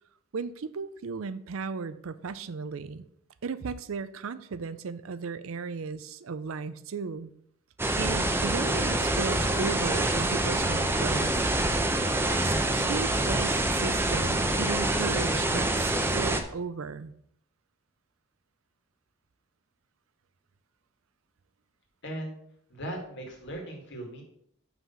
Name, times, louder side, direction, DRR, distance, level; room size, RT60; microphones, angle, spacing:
voice 1, 0.3-3.1 3.4-7.3 8.0-11.5 12.4-17.1, right 5 dB, 70° right, 14 dB, 0.5 m, -35 dB
sound 1, 7.8-16.4, right 1 dB, 10° right, 0.6 m, -26 dB
voice 2, 22.0-22.4 22.7-24.2, right 1 dB, 60° left, 1 dB, 2.1 m, -38 dB
5.9 x 5.6 x 5.6 m, 0.69 s
head